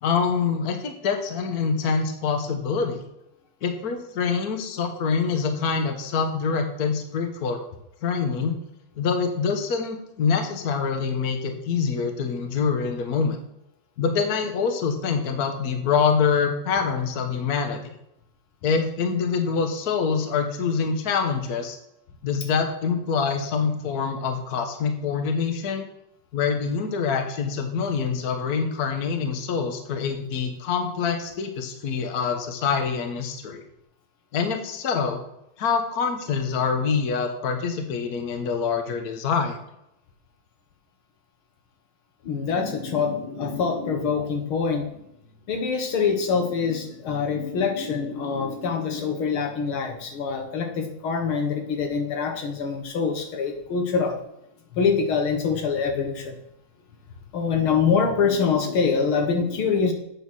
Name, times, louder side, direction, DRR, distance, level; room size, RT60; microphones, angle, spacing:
voice 1, 0.0-3.0 3.6-7.6 8.0-8.6 9.0-13.4 14.0-17.9 18.6-21.8 22.2-25.9 26.3-33.6 34.3-35.2 35.6-39.6, left 5 dB, 50° left, 6 dB, 1.5 m, -25 dB
voice 2, 42.2-44.9 45.5-54.2 54.7-56.4 57.3-59.9, left 5 dB, 90° left, 4 dB, 2.3 m, -25 dB
8.3 x 6.5 x 6.2 m, 0.83 s
omnidirectional pair, 2.2 m